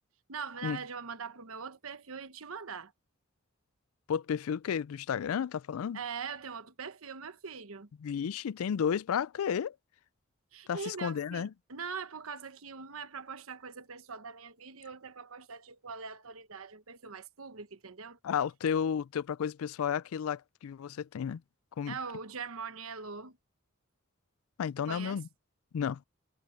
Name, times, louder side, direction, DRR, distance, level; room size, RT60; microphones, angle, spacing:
voice 1, 0.3-2.9 5.9-7.9 10.5-18.2 21.9-23.4 24.9-25.2, right 5 dB, 80° right, 1.1 m, -42 dB
voice 2, 4.1-6.0 8.0-9.7 10.7-11.5 18.2-21.4 21.8-22.0 24.6-25.3 25.7-26.0, left 7 dB, 85° left, 0.4 m, -32 dB
head